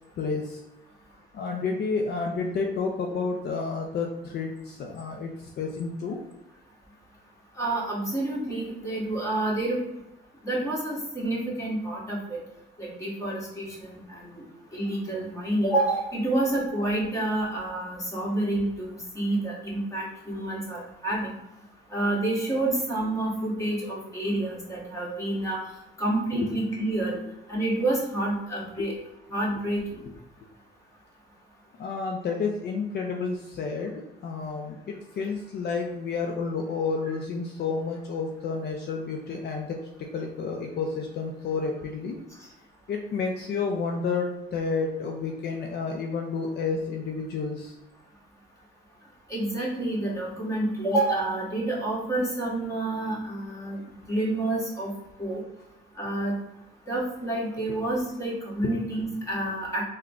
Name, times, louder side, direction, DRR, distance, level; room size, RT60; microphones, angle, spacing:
voice 1, 0.2-0.6 1.3-6.2 26.3-26.5 28.8-28.9 31.8-33.9 34.2-39.8 40.1-42.2 42.9-47.7, left 4 dB, 55° left, 2 dB, 0.5 m, -30 dB
voice 2, 7.6-9.8 10.4-12.2 12.8-14.0 14.2-14.4 14.7-21.3 21.9-25.6 26.0-27.2 27.5-28.9 29.3-29.8 49.3-53.8 54.1-54.9 55.2-55.4 56.0-56.4 56.9-59.8, right 1 dB, 15° left, -4 dB, 1.5 m, -28 dB
3.6 x 2.2 x 3.5 m, 0.92 s
cardioid pair, 90°, 20 cm